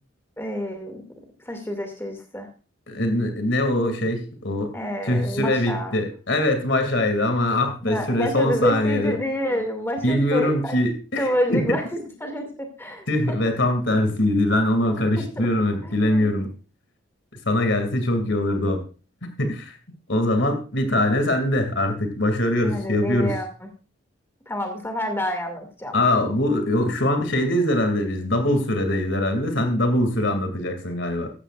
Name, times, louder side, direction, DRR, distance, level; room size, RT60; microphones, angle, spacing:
voice 1, 0.4-1.0 1.5-2.5 4.7-5.9 7.8-10.7 11.2-13.4 15.2-15.5 15.8-16.4 22.6-23.7 24.5-26.0, equal, 10° left, 4 dB, 2.4 m, -28 dB
voice 2, 2.9-4.7 5.1-9.1 10.0-11.8 13.1-16.5 17.4-18.8 19.4-19.7 20.1-23.3 25.9-31.3, left 1 dB, 65° left, 6 dB, 2.6 m, -22 dB
15.0 x 13.5 x 2.5 m, 0.36 s
head